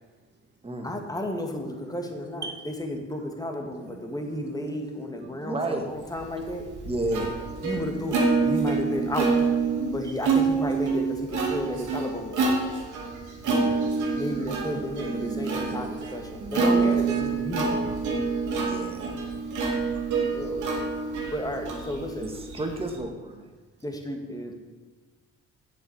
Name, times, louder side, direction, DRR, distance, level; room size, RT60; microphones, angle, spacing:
voice 1, 0.8-2.5 2.8-6.6 7.6-9.3 9.9-12.5 14.1-17.9 20.3-20.9 21.3-22.3 23.8-24.5, left 1 dB, 10° left, 2.0 m, -33 dB
voice 2, 3.7-5.5 6.3-6.4 7.2-7.3 7.6-7.8 10.0-10.2 14.2-17.2 18.2-18.3 18.7-18.8 19.9-20.9, right 5 dB, 35° right, 1.9 m, -42 dB
voice 3, 5.4-5.9 6.8-7.3 13.4-14.0 18.6-19.2 22.2-23.4, right 2 dB, 20° right, 1.8 m, -32 dB
Plucked string instrument, 6.2-23.0, right 4 dB, 75° right, 2.9 m, -27 dB
7.8 x 7.5 x 8.0 m
cardioid pair, 90°, 30 cm